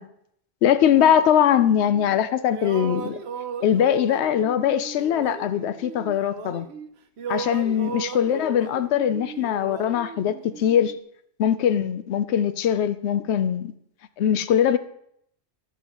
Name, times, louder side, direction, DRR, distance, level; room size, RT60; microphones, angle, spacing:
voice 1, 0.6-3.2 3.6-6.7 7.3-10.9 11.4-13.7 14.2-14.8, left 9 dB, 80° left, 0.9 m, -21 dB
sound 1, 0.8-2.2 2.5-6.9 7.2-11.0, right 6 dB, 75° right, 1.0 m, -37 dB
20.5 x 7.2 x 3.0 m
omnidirectional pair, 1.1 m